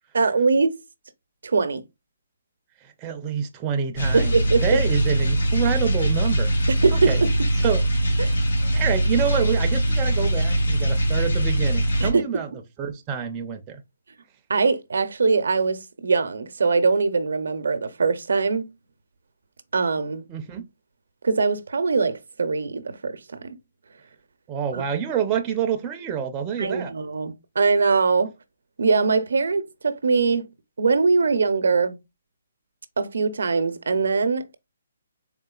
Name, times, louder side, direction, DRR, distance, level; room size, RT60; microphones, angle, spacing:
voice 1, 0.1-0.8 1.4-1.8 4.1-4.8 6.7-7.3 8.2-8.4 12.0-12.2 14.5-18.7 19.7-20.2 21.2-23.6 24.7-24.8 26.6-28.3 28.8-30.5 30.8-32.0 33.0-34.6, right 4 dB, 80° right, 0.6 m, -22 dB
voice 2, 2.8-6.5 6.9-7.2 7.6-7.8 8.7-12.5 12.8-13.8 20.3-20.6 24.5-26.9, right 8 dB, 15° right, 0.4 m, -27 dB
sound 1, 4.0-12.1, right 1 dB, 85° left, 2.0 m, -22 dB
3.8 x 3.6 x 2.3 m
hypercardioid pair, 165°, 0 cm